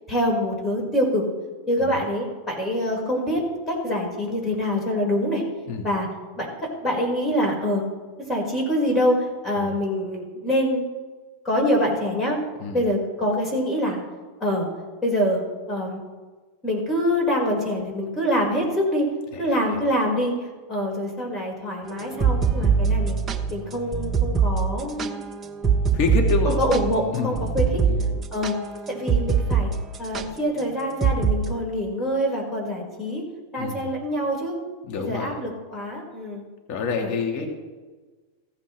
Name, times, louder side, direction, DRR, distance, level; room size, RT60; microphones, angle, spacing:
voice 1, 0.1-1.3 1.7-5.4 5.8-6.1 6.4-6.5 6.8-7.8 8.3-10.8 11.4-12.4 12.7-14.0 14.4-14.7 15.0-15.4 15.7-16.0 16.6-19.1 19.4-23.2 23.5-25.2 26.5-27.8 28.3-28.5 28.9-29.7 30.0-33.2 33.5-34.6 35.0-36.4 37.0-37.1 37.4-37.5, equal, 15° left, -1 dB, 5.3 m, -25 dB
voice 2, 19.3-19.8 22.1-22.6 25.9-26.6 27.1-27.5 27.8-28.1 33.6-33.8 34.9-35.4 36.7-37.5, left 5 dB, 50° left, 3 dB, 2.0 m, -28 dB
sound 1, 22.0-29.7 29.9-30.3 31.0-31.4, right 6 dB, 20° right, 1.0 m, -22 dB
16.0 x 15.0 x 3.4 m, 1.3 s
hypercardioid pair, 120°, 0 cm